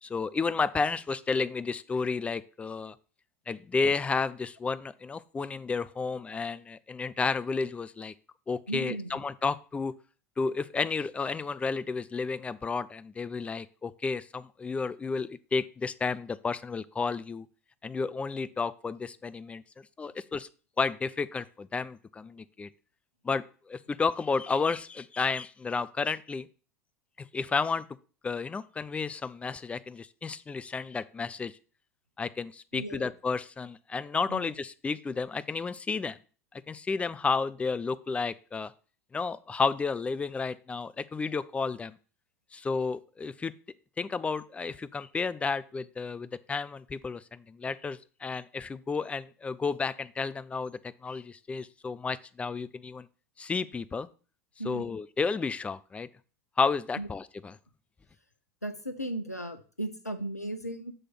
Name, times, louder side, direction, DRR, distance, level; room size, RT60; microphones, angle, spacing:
voice 1, 0.0-2.9 3.5-8.1 8.5-9.9 10.4-17.5 17.8-20.5 20.8-22.7 23.2-26.5 27.3-27.8 28.2-31.5 32.2-36.2 36.7-38.7 39.1-41.9 42.5-43.5 44.0-53.1 53.4-54.1 54.7-56.1 56.6-57.5, left 4 dB, 15° left, 15 dB, 0.4 m, -32 dB
voice 2, 8.7-9.2 32.7-33.1 34.3-34.5 54.6-54.9 57.0-57.1 58.6-60.9, right 1 dB, 90° left, 7 dB, 0.8 m, -36 dB
7.8 x 3.2 x 5.8 m, 0.38 s
figure-of-eight pair, 80°, 8 cm